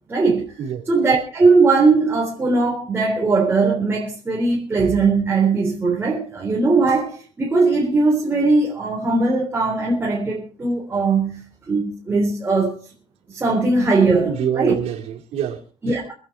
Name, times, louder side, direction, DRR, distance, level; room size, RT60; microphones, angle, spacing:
voice 1, 0.1-0.6 0.9-12.8 13.3-14.7 15.8-16.1, right 3 dB, 20° right, 3.6 m, -19 dB
voice 2, 14.2-16.0, right 9 dB, 70° right, 3.6 m, -26 dB
26.0 x 9.1 x 4.5 m
cardioid pair, 170°, 11 cm